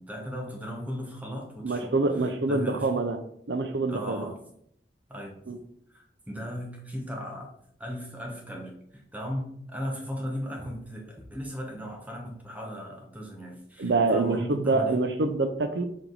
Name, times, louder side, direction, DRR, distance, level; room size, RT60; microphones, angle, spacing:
voice 1, 0.0-3.0 3.9-4.4 5.1-5.3 5.9-7.5 7.8-15.0, equal, 10° right, 0 dB, 1.2 m, -37 dB
voice 2, 1.6-3.2 3.5-4.3 5.5-5.6 13.8-15.8, right 3 dB, 80° right, 8 dB, 0.6 m, -26 dB
7.2 x 3.6 x 4.0 m, 0.69 s
head